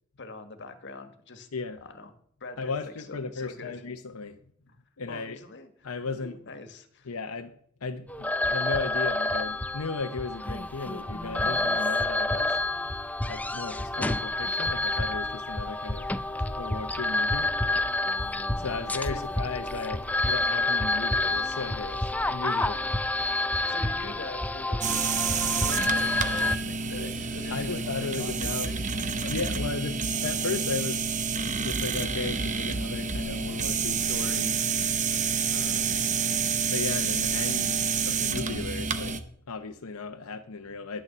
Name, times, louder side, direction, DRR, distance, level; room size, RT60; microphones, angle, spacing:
voice 1, 0.2-1.5 1.8-2.1 2.4-3.8 4.7-4.8 5.1-5.7 6.0-7.1 19.0-19.2 23.7-28.9 29.2-29.3, left 3 dB, 55° left, 8 dB, 1.4 m, -43 dB
voice 2, 2.6-4.4 5.0-5.4 5.8-6.4 7.1-7.5 7.8-12.6 13.3-16.1 16.6-17.5 18.6-23.0 27.5-28.7 29.3-31.1 31.6-34.6 35.5-36.1 36.7-37.7 38.1-39.2 39.5-41.0, left 4 dB, 90° left, 6 dB, 0.7 m, -35 dB
sound 1, 8.1-26.6, left 2 dB, 5° left, 0.5 m, -28 dB
sound 2, 24.8-39.2, right 5 dB, 35° right, 0.8 m, -28 dB
10.5 x 6.7 x 7.2 m, 0.63 s
head